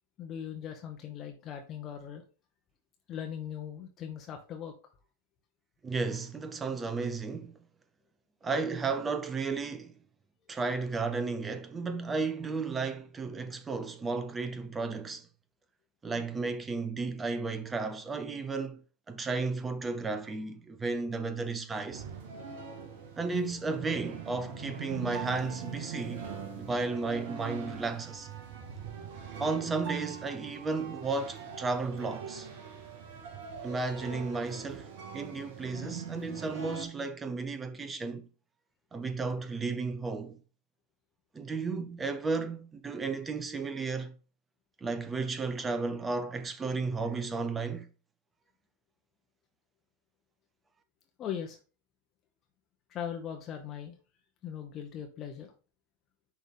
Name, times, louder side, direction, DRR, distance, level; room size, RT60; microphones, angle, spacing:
voice 1, 0.2-2.2 3.1-4.7 51.2-51.6 52.9-54.0 54.4-55.5, left 9 dB, 30° left, 1.1 m, -39 dB
voice 2, 5.8-7.6 8.4-9.9 10.5-15.3 16.0-18.8 19.1-22.0 23.2-26.3 26.6-28.3 29.4-32.5 33.6-34.9 35.1-38.3 38.9-40.4 41.3-44.1 44.8-47.9, right 4 dB, 15° right, 0.9 m, -33 dB
sound 1, 21.9-36.9, right 6 dB, 50° right, 1.5 m, -42 dB
10.0 x 3.5 x 3.9 m
figure-of-eight pair, 90°, 0 cm